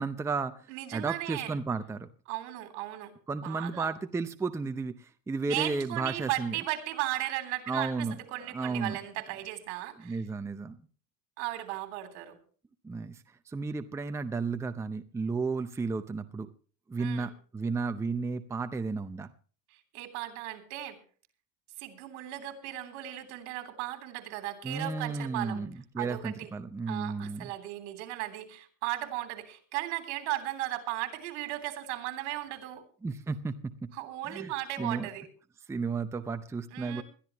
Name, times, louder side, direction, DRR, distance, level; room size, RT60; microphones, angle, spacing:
voice 1, 0.0-0.5 0.9-2.1 3.3-6.5 7.7-8.2 8.5-9.0 10.0-10.8 12.8-13.2 13.5-16.5 16.9-19.3 24.6-27.5 33.0-33.9 34.3-34.5 34.8-35.1 35.7-37.0, right 4 dB, 10° right, 9 dB, 0.6 m, -33 dB
voice 2, 0.7-1.5 2.3-3.1 3.4-3.9 5.5-10.2 11.4-12.4 17.0-17.3 19.7-21.0 21.8-25.6 26.0-26.5 26.9-32.8 33.9-35.3 36.7-37.0, right 15 dB, 75° right, 7 dB, 3.3 m, -36 dB
21.5 x 13.0 x 3.0 m, 0.41 s
cardioid pair, 150°, 35 cm